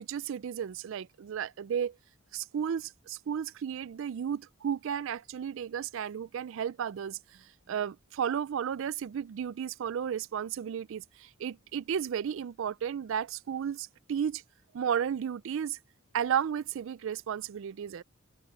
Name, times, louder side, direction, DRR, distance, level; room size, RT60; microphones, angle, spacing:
voice 1, 0.0-2.0 2.3-14.4 14.7-15.8 16.1-18.0, right 8 dB, 65° right, 0.3 m, -33 dB
head